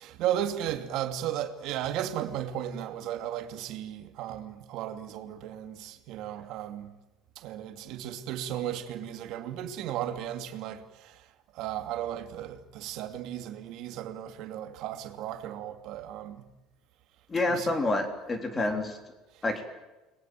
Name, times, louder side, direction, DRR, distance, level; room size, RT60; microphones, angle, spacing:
voice 1, 0.0-6.9 7.4-11.2 11.5-16.4 17.5-17.7 18.6-18.7, right 11 dB, 50° right, 2.8 m, -35 dB
voice 2, 17.3-19.0 19.4-19.6, left 2 dB, 15° left, 3.6 m, -28 dB
30.0 x 22.0 x 7.8 m
cardioid pair, 170°, 0 cm